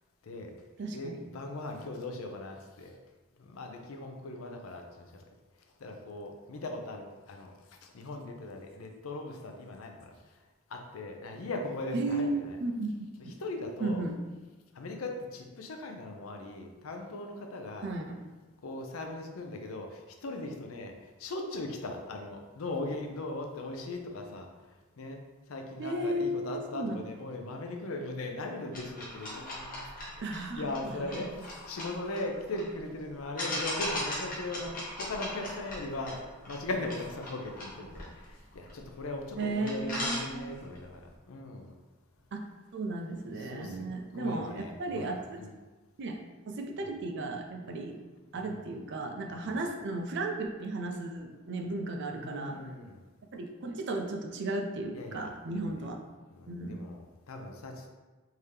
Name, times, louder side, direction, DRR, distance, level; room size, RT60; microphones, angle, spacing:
voice 1, 0.2-0.5 0.9-3.0 3.4-5.1 5.8-7.5 7.8-10.1 10.7-12.6 13.4-14.1 14.7-17.9 18.6-24.5 25.0-25.2 25.5-29.8 30.1-41.0 41.3-41.7 43.4-43.9 44.1-45.1 45.4-45.5 48.3-48.6 49.3-49.5 52.1-53.0 54.9-55.3 55.6-55.8 56.3-57.9, left 2 dB, 75° left, 3 dB, 0.5 m, -39 dB
voice 2, 0.8-1.2 11.9-13.3 13.8-14.2 17.8-18.2 25.8-27.0 30.2-31.1 39.4-40.6 42.3-42.5 42.7-45.4 46.0-46.2 46.5-48.0 48.3-52.6 53.3-56.0 56.5-56.8, right 2 dB, 55° right, 3 dB, 0.4 m, -35 dB
sound 1, 28.7-32.7 33.4-39.0 39.4-39.5 39.7-40.8, left 1 dB, 40° left, 1.0 m, -38 dB
3.6 x 2.8 x 3.2 m, 1.3 s
head